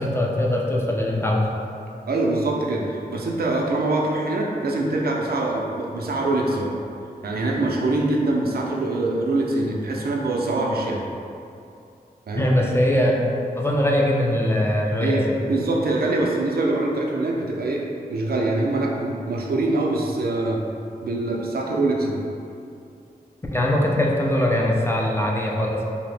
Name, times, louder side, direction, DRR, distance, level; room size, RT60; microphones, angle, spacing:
voice 1, 0.0-1.5 12.3-13.2 13.6-15.5 23.5-25.8, left 1 dB, 15° left, -2 dB, 0.3 m, -21 dB
voice 2, 2.1-6.7 7.2-11.1 12.3-12.5 15.0-17.8 18.1-20.6 21.0-22.2, right 2 dB, 70° right, -2 dB, 0.4 m, -24 dB
2.7 x 2.0 x 3.2 m, 2.6 s
wide cardioid pair, 70°, 16 cm